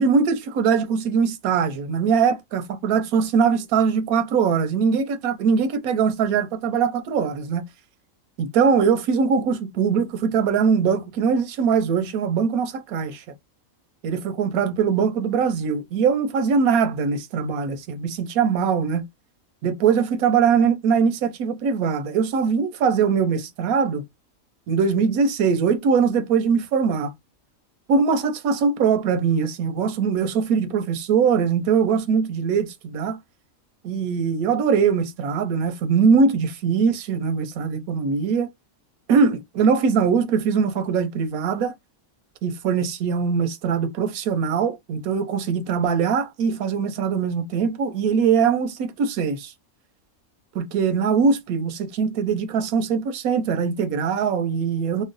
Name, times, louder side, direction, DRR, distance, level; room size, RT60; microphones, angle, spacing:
voice 1, 0.0-7.6 8.4-13.2 14.0-19.0 19.6-24.0 24.7-27.1 27.9-33.2 33.8-38.5 39.1-41.7 42.4-49.5 50.5-55.0, right 6 dB, 90° right, 1.1 m, -21 dB
3.0 x 2.0 x 3.8 m
omnidirectional pair, 1.5 m